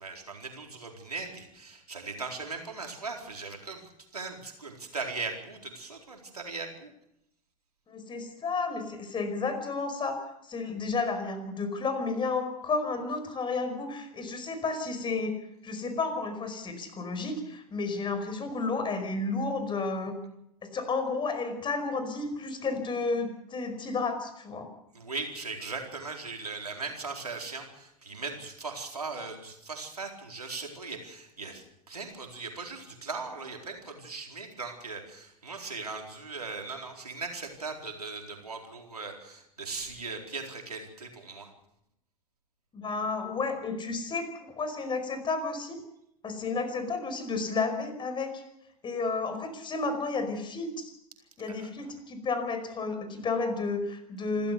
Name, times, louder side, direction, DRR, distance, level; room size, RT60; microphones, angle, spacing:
voice 1, 0.0-3.8 4.1-6.9 24.9-41.5 51.5-51.7, right 4 dB, 85° right, 2 dB, 4.4 m, -39 dB
voice 2, 7.9-10.2 10.5-15.3 15.6-20.1 20.7-24.7 42.7-44.3 44.6-45.8 46.2-48.4 48.8-50.9 51.4-54.5, left 4 dB, 25° left, 8 dB, 5.1 m, -32 dB
27.5 x 14.0 x 6.8 m, 0.80 s
figure-of-eight pair, 85°, 19 cm